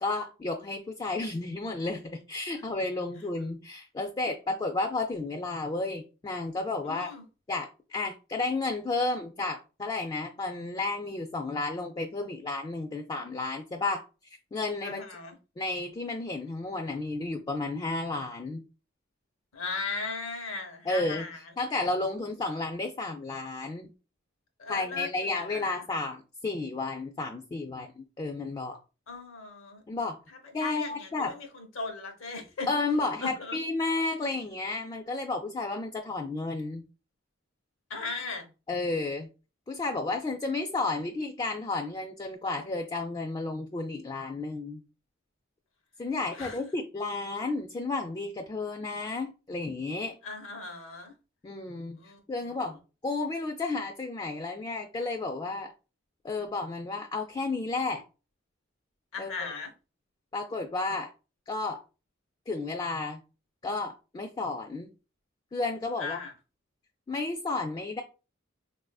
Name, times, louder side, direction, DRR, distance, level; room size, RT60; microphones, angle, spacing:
voice 1, 0.0-7.1 7.5-14.0 14.5-15.0 15.6-18.6 20.9-21.3 21.6-23.9 24.7-28.8 29.9-30.2 30.5-31.4 32.7-36.8 38.7-39.3 39.7-44.8 46.0-50.1 51.4-52.0 52.3-52.8 53.0-55.7 56.2-58.0 59.2-59.3 60.3-61.1 61.5-61.8 62.5-63.2 63.6-64.9 65.5-66.2 67.1-68.0, left 3 dB, 20° left, 0.3 m, -32 dB
voice 2, 6.8-7.2 14.8-15.4 19.5-21.4 24.6-25.8 29.1-29.8 30.5-32.7 33.2-33.6 37.9-38.5 46.3-46.6 50.2-51.1 52.0-52.6 59.1-59.7 66.0-66.3, left 3 dB, 80° left, 0.8 m, -38 dB
3.9 x 2.5 x 2.3 m
head